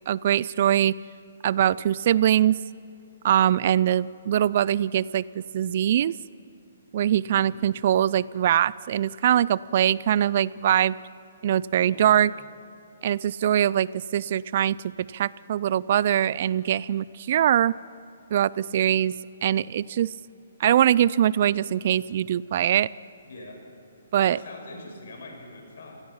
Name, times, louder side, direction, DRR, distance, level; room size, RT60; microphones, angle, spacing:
voice 1, 0.1-1.0 1.4-2.6 3.2-6.1 6.9-11.0 11.4-12.3 13.0-14.8 15.1-17.8 18.3-19.2 19.4-20.1 20.6-22.9 24.1-24.4, right 10 dB, 50° right, 21 dB, 0.4 m, -22 dB
voice 2, 7.2-7.5 11.7-12.2 23.2-23.6 24.1-25.9, left 2 dB, 70° left, 2 dB, 6.5 m, -42 dB
25.5 x 18.0 x 5.7 m, 2.7 s
hypercardioid pair, 150°, 0 cm